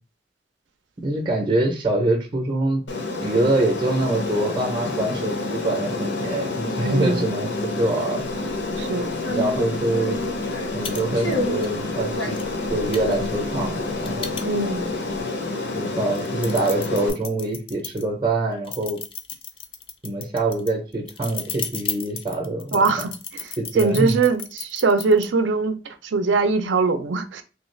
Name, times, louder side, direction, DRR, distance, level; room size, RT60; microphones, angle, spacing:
voice 1, 1.0-2.8 3.2-8.2 9.3-10.2 10.7-12.4 12.7-14.4 15.7-19.0 20.0-23.1 23.6-24.2, right 2 dB, 25° right, 0.6 m, -24 dB
Aircraft, 2.9-17.1, left 3 dB, 65° left, 0.6 m, -28 dB
voice 2, 6.8-7.2 8.8-9.1 14.4-14.8 22.7-23.1 23.8-27.4, right 4 dB, 80° right, 0.5 m, -21 dB
sound 1, 8.4-8.6 9.1-10.8 11.2-11.7 12.1-14.3 14.6-15.2, equal, 85° left, 1.1 m, -31 dB
sound 2, 10.8-11.0 11.3-11.7 12.4-12.5 12.9-14.9 15.4-15.5 16.0-18.0 18.6-25.3, left 7 dB, 30° left, 0.4 m, -34 dB
3.2 x 2.3 x 3.1 m
head